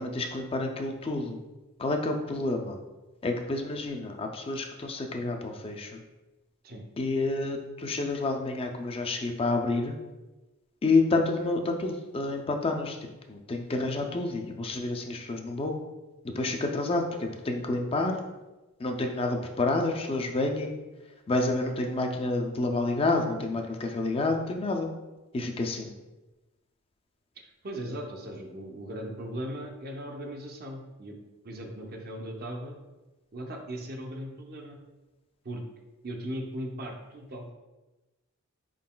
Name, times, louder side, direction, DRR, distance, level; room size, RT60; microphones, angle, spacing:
voice 1, 0.0-1.4 1.8-2.8 3.2-6.0 7.0-10.0 10.8-13.0 13.3-15.8 16.2-18.2 18.8-20.8 21.3-24.9 25.3-25.9, left 2 dB, 25° left, 4 dB, 0.4 m, -29 dB
voice 2, 27.4-31.2 31.4-32.8 33.3-34.8 35.4-35.6 36.0-37.5, right 1 dB, 45° right, 2 dB, 0.6 m, -38 dB
4.6 x 3.8 x 2.2 m, 1.1 s
head